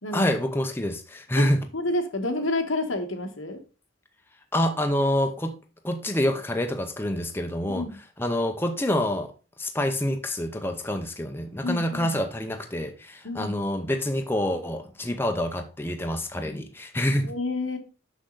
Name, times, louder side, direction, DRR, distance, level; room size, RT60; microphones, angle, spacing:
voice 1, 0.1-1.6 4.5-5.5 5.8-7.9 8.2-9.3 9.6-17.3, left 1 dB, 10° left, 0.7 m, -27 dB
voice 2, 1.7-3.6 7.7-7.9 11.6-12.1 13.2-13.5 17.2-17.8, left 2 dB, 85° left, 1.4 m, -29 dB
6.4 x 6.3 x 3.9 m
head